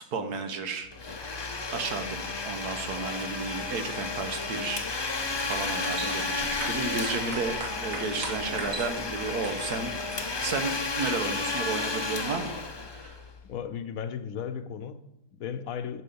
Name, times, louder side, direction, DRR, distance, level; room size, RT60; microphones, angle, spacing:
voice 1, 0.1-0.9 1.7-4.9 5.5-12.5 12.9-13.2, right 4 dB, 85° right, 1.7 m, -33 dB
Domestic sounds home sounds, 0.9-13.5, left 3 dB, 30° left, 0.4 m, -32 dB
sound 1, 5.1-10.5, right 3 dB, 60° right, 1.8 m, -40 dB
voice 2, 13.4-16.0, left 8 dB, 70° left, 1.0 m, -36 dB
11.0 x 6.2 x 7.0 m
omnidirectional pair, 1.6 m